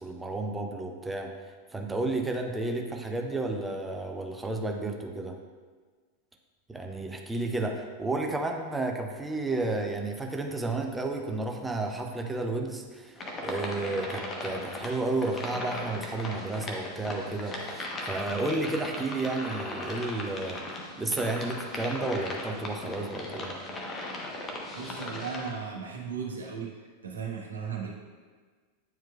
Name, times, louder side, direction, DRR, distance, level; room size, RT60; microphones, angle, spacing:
voice 1, 0.0-1.3 1.7-5.4 6.7-20.6 21.0-23.5, right 2 dB, 10° right, 2 dB, 0.6 m, -32 dB
sound 1, 13.2-25.5, left 1 dB, 20° left, 1.0 m, -38 dB
voice 2, 24.7-26.7 27.0-27.9, right 6 dB, 70° right, -1 dB, 1.0 m, -36 dB
9.4 x 4.5 x 2.3 m, 1.5 s
figure-of-eight pair, 90°, 0 cm